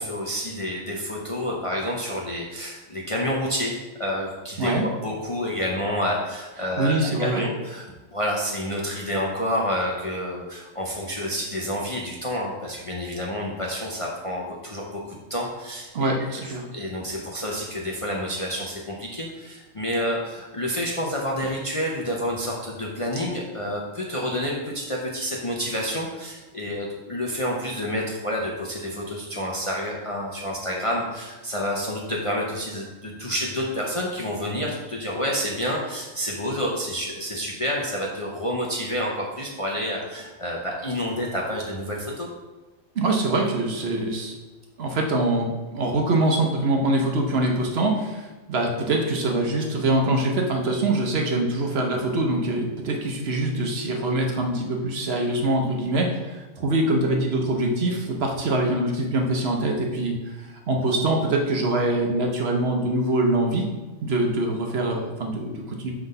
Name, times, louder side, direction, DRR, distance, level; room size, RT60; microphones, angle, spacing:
voice 1, 0.0-7.8 8.1-42.3, equal, 30° left, -3 dB, 0.6 m, -29 dB
voice 2, 6.8-7.4 15.9-16.6 43.0-44.4 44.8-45.5 45.7-63.7 64.0-65.9, right 2 dB, 55° right, 1 dB, 0.9 m, -24 dB
5.8 x 3.5 x 5.3 m, 1.2 s
omnidirectional pair, 1.4 m